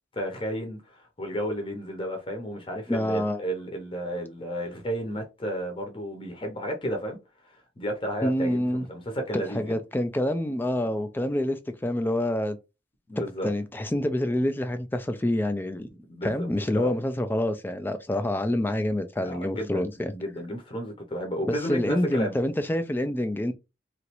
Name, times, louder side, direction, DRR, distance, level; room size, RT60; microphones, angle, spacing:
voice 1, 0.1-7.2 7.8-9.8 13.1-13.5 16.1-16.5 16.7-16.9 19.2-22.3, equal, 25° left, 0.7 m, -32 dB
voice 2, 2.9-3.4 8.2-8.9 9.3-12.6 13.4-15.9 16.2-20.1 21.5-23.5, left 1 dB, 10° left, 0.3 m, -27 dB
3.0 x 2.5 x 2.9 m
head